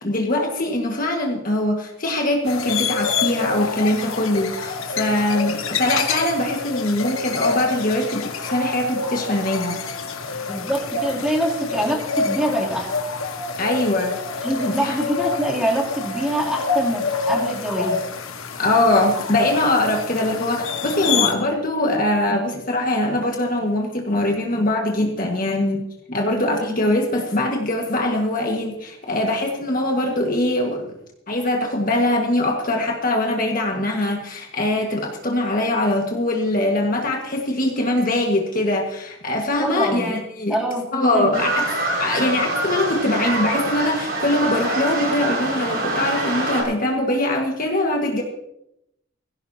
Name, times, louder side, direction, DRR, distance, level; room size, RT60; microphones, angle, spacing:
voice 1, 0.0-9.8 13.6-14.2 14.7-15.0 18.6-25.8 26.1-30.9 31.3-40.6 40.9-41.6 42.0-48.2, left 1 dB, 40° left, 1 dB, 1.7 m, -22 dB
sound 1, 2.5-21.3, left 4 dB, 85° left, 1.6 m, -27 dB
voice 2, 10.5-12.9 14.4-18.0 21.1-21.2 39.6-40.1 40.5-40.9 41.1-41.3, equal, 5° right, -4 dB, 3.0 m, -24 dB
sound 2, 41.3-46.6, right 2 dB, 50° right, 5.6 m, -25 dB
18.5 x 16.0 x 2.9 m, 0.81 s
head